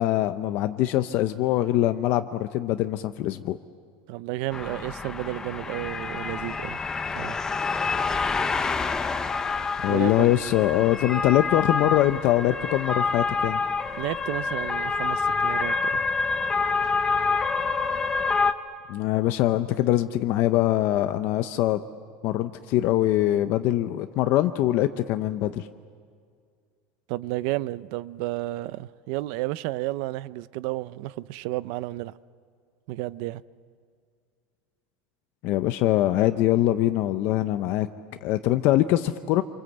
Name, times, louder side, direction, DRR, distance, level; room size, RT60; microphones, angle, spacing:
voice 1, 0.0-3.6 9.8-13.6 18.9-21.8 22.2-25.7 35.4-37.9 38.2-39.4, left 14 dB, 45° left, 0.7 m, -23 dB
voice 2, 4.1-6.8 7.2-7.4 9.9-10.3 13.9-16.0 27.1-32.1 32.9-33.4, right 17 dB, 55° right, 0.6 m, -32 dB
sound 1, 4.5-18.5, left 4 dB, 10° left, 0.8 m, -27 dB
27.0 x 26.0 x 8.0 m
cardioid pair, 170°, 5 cm